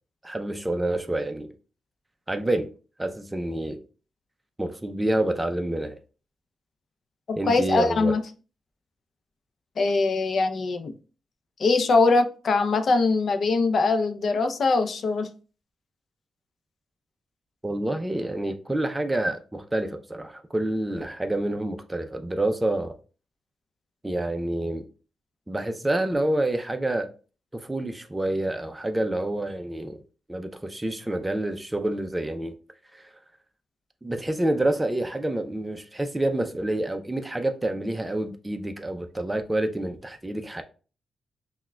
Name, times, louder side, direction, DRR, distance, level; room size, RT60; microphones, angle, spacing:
voice 1, 0.2-1.5 2.3-2.7 3.0-3.8 4.6-6.0 7.4-8.1 17.6-22.9 24.0-24.9 25.5-27.1 27.5-30.0 30.3-32.5 32.9-33.1 34.0-40.6, right 1 dB, 15° right, 0.4 m, -28 dB
voice 2, 7.3-8.2 9.8-10.9 11.6-15.3, left 3 dB, 60° left, 0.5 m, -22 dB
5.7 x 2.1 x 2.2 m
cardioid pair, 85°, 0 cm